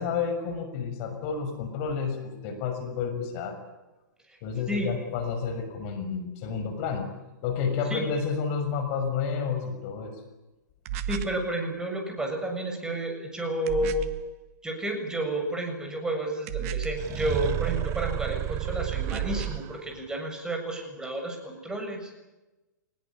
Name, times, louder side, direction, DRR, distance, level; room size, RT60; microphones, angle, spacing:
voice 1, 0.0-3.6 4.4-7.1 7.4-10.1, left 6 dB, 40° left, 7 dB, 6.4 m, -30 dB
sound 1, 10.9-11.4 13.7-14.3 16.5-17.1 18.9-19.7, right 10 dB, 45° right, 1.5 m, -33 dB
voice 2, 11.1-14.1 14.6-22.1, right 1 dB, 5° right, 3 dB, 7.0 m, -31 dB
sound 2, 17.0-20.0, right 14 dB, 30° right, 0.8 m, -31 dB
26.0 x 21.0 x 8.8 m, 1.1 s
hypercardioid pair, 120°, 10 cm